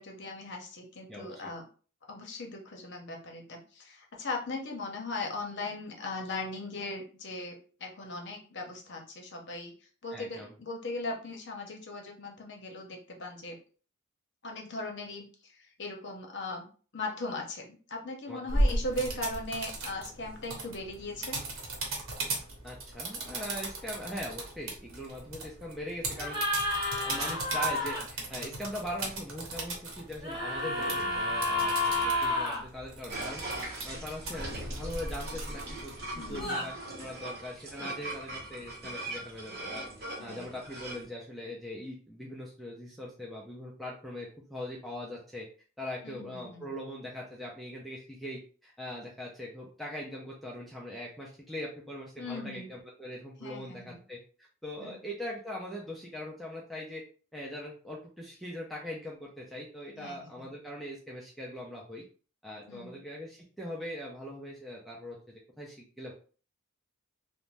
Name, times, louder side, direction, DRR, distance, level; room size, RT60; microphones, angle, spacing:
voice 1, 0.0-1.7 2.1-9.7 10.0-13.6 14.4-16.7 16.9-21.4 36.1-36.7 40.2-40.6 46.0-46.7 52.2-52.7 53.4-54.0 54.8-55.0 60.0-60.5 62.7-63.0, left 2 dB, 55° left, 1 dB, 0.7 m, -39 dB
voice 2, 1.1-1.5 10.1-10.5 18.3-18.7 22.6-26.4 27.0-36.7 37.0-45.5 45.8-57.0 57.3-62.0 62.4-66.1, left 1 dB, ahead, -4 dB, 0.4 m, -41 dB
sound 1, 18.5-36.4, right 1 dB, 85° right, 0.8 m, -37 dB
sound 2, 26.1-28.0 30.2-32.6 36.3-36.6, left 1 dB, 20° right, 1.2 m, -30 dB
sound 3, 33.1-41.0, right 2 dB, 50° right, 0.9 m, -41 dB
2.5 x 2.1 x 3.1 m, 0.39 s
head